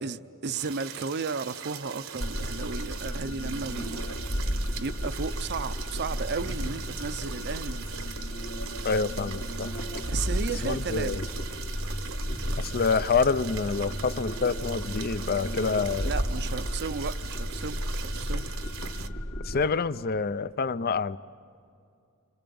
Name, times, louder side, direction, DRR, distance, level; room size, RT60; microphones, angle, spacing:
voice 1, 0.0-4.2 4.8-8.0 10.1-11.4 16.0-18.5, right 4 dB, 50° right, 0.6 m, -34 dB
sound 1, 0.5-19.1, right 7 dB, 65° right, 1.1 m, -41 dB
sound 2, 2.2-19.7, equal, 90° left, 3.1 m, -33 dB
voice 2, 8.8-9.7 10.6-11.2 12.6-16.1 19.4-21.2, left 4 dB, 45° left, 0.6 m, -27 dB
sound 3, 9.1-17.9, right 1 dB, 25° right, 0.9 m, -45 dB
29.0 x 25.5 x 7.1 m
head